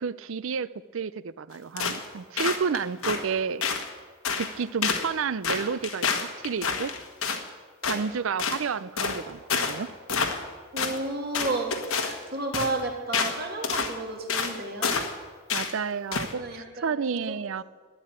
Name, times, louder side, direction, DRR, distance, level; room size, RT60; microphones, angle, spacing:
voice 1, 0.0-3.6 4.4-6.9 7.8-9.9 15.5-17.6, right 6 dB, 65° right, 18 dB, 0.5 m, -31 dB
sound 1, 1.8-2.1 2.4-3.2 3.6-3.9 4.2-4.5 4.8-5.1 5.4-7.4 7.8-8.0 8.4-8.6 9.0-9.2 9.5-9.8 10.1-10.5 10.8-11.0 11.3-12.2 12.5-12.7 13.1-13.4 13.6-13.9 14.3-14.5 14.8-15.1 15.5-15.7 16.1-16.3, left 5 dB, 80° left, 1.4 m, -28 dB
voice 2, 10.7-11.7 12.0-14.9 16.4-17.3, right 2 dB, 50° right, 2 dB, 2.5 m, -32 dB
12.0 x 10.0 x 8.9 m, 1.5 s
head